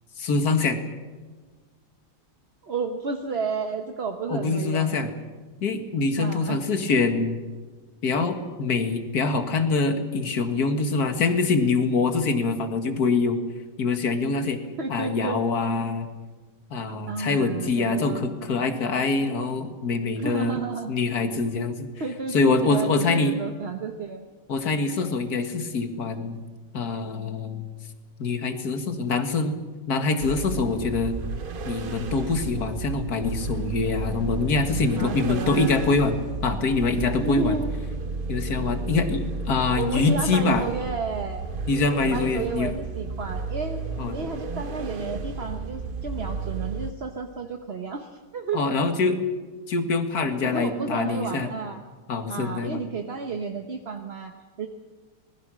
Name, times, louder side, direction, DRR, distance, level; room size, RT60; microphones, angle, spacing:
voice 1, 0.2-0.8 4.3-5.1 5.6-7.4 8.0-13.4 13.8-14.6 14.9-16.1 16.7-20.6 20.9-21.9 22.3-23.3 24.5-26.4 26.7-27.7 28.2-29.6 29.9-31.1 31.7-37.6 38.3-40.7 41.7-42.7 44.0-44.2 48.5-49.2 49.7-51.5 52.1-52.8, left 3 dB, 45° left, 7 dB, 2.2 m, -24 dB
voice 2, 2.6-4.9 6.2-6.6 14.8-15.4 17.1-18.2 20.2-20.9 22.0-24.2 34.9-36.0 37.2-37.7 39.8-41.4 42.1-43.8 44.1-48.6 50.4-51.8 52.3-54.7, right 4 dB, 40° right, 4 dB, 1.1 m, -32 dB
sound 1, 30.2-46.9, right 4 dB, 65° right, 0.5 m, -33 dB
25.5 x 20.5 x 6.3 m, 1.4 s
omnidirectional pair, 2.3 m